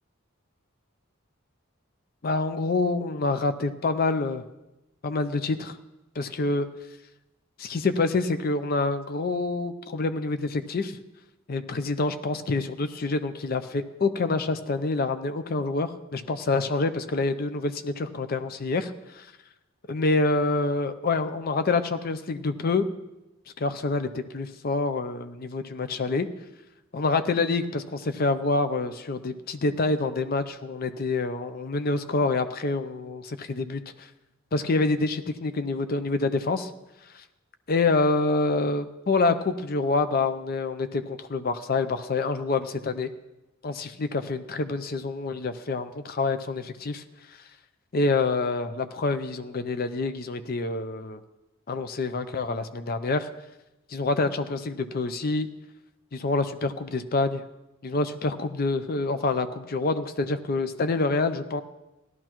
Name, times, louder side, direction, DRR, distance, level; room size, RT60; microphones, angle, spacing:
voice 1, 2.2-4.4 5.0-5.8 6.2-6.7 7.6-11.0 11.5-19.3 19.9-22.9 23.6-26.3 26.9-34.1 34.5-36.7 37.1-37.2 37.7-43.1 43.6-47.0 47.9-51.2 51.7-53.3 53.9-55.5 56.1-57.4 57.8-61.6, left 3 dB, 45° left, 10 dB, 0.5 m, -27 dB
17.0 x 12.0 x 3.0 m, 0.98 s
head